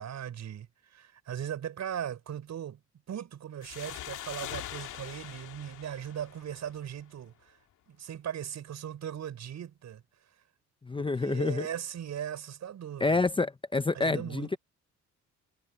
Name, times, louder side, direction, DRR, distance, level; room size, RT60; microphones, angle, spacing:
voice 1, 0.0-2.8 3.1-7.6 7.9-10.0 11.0-13.3 13.9-14.6, right 9 dB, 65° right, 6.7 m, -39 dB
sound 1, 3.6-7.0, left 12 dB, 85° left, 2.5 m, -43 dB
voice 2, 10.9-11.7 13.0-14.6, left 3 dB, 15° left, 0.8 m, -28 dB
cardioid pair, 90°, 30 cm